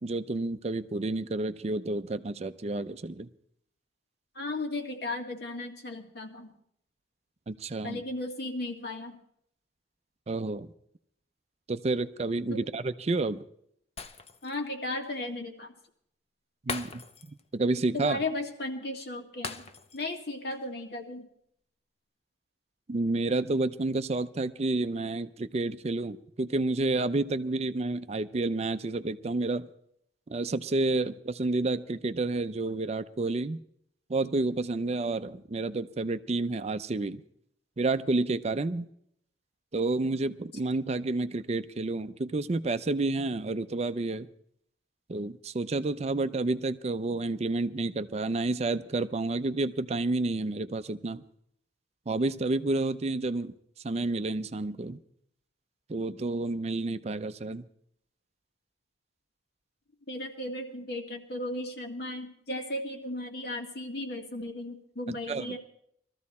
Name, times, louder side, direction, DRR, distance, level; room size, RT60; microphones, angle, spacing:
voice 1, 0.0-3.3 7.5-8.0 10.3-10.7 11.7-13.4 16.7-17.0 17.3-18.2 22.9-29.7 30.3-33.6 34.1-37.2 37.8-38.9 39.7-44.3 45.1-51.2 52.1-53.5 53.8-55.0 55.9-57.6 65.1-65.5, right 2 dB, 35° right, 12 dB, 0.5 m, -30 dB
voice 2, 4.4-6.5 7.8-9.2 12.5-12.6 14.4-15.7 17.9-19.6 19.9-21.3 60.1-65.6, left 2 dB, 65° left, 3 dB, 2.1 m, -35 dB
Shatter, 14.0-14.7 15.0-15.2 16.7-17.5 17.8-17.9 19.4-20.2 20.5-20.7, left 5 dB, 35° left, 0.8 m, -40 dB
20.5 x 14.0 x 4.2 m, 0.70 s
head